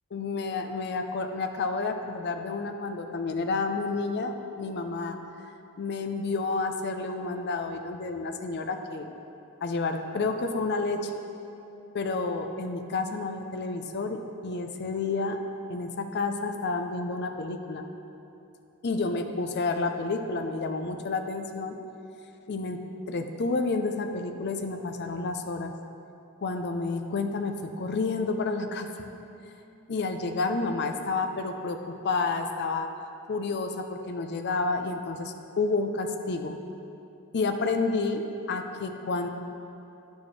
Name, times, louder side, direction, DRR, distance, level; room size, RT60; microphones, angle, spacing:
voice 1, 0.1-5.2 5.8-9.1 9.6-11.1 11.9-15.4 15.7-17.8 18.8-21.7 22.5-22.8 23.1-25.7 26.4-28.9 29.9-32.9 33.3-36.5 37.3-39.3, left 3 dB, 50° left, 5 dB, 0.5 m, -30 dB
10.0 x 6.2 x 3.2 m, 2.9 s
head